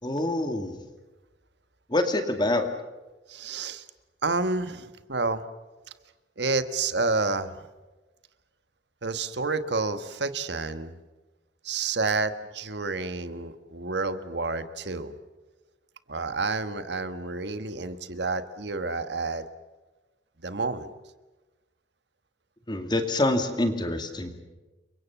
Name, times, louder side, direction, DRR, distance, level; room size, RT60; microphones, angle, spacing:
voice 1, 0.0-0.8 1.9-2.7 22.7-24.3, left 1 dB, 25° left, 6 dB, 2.3 m, -26 dB
voice 2, 3.3-3.8 4.2-5.4 6.4-7.5 9.0-11.0 11.6-15.1 16.1-19.4 20.4-20.9, right 3 dB, 65° right, 11 dB, 1.5 m, -29 dB
29.5 x 24.0 x 7.2 m, 1.2 s
head